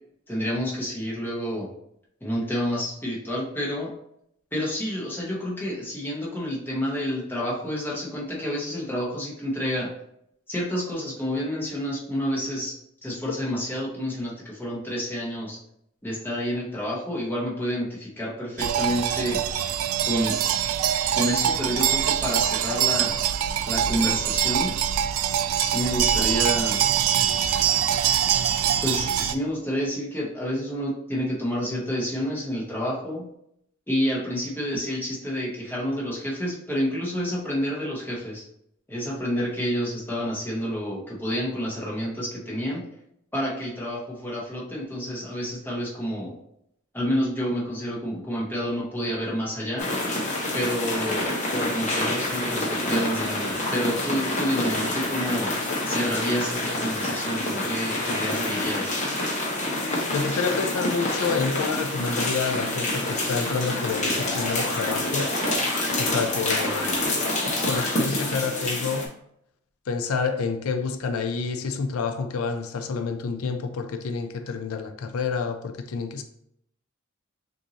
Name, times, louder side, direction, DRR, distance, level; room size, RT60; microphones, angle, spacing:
voice 1, 0.3-1.7 2.2-3.9 4.5-9.9 10.5-12.7 13.0-15.6 16.0-19.4 20.1-20.4 21.1-23.1 23.7-24.8 25.6-26.8 28.8-33.3 33.9-38.4 38.9-42.9 43.3-46.3 46.9-49.9 50.5-55.6 55.9-59.0, equal, 10° left, 1.1 m, -29 dB
sound 1, 18.6-29.4, right 9 dB, 85° right, 0.3 m, -24 dB
sound 2, 49.8-69.1, left 1 dB, 35° left, 1.1 m, -27 dB
voice 2, 60.1-65.4 66.0-66.9 67.6-69.1 69.9-76.2, left 5 dB, 90° left, 0.4 m, -28 dB
sound 3, 63.9-68.3, left 1 dB, 65° left, 1.1 m, -34 dB
6.0 x 2.7 x 2.8 m
head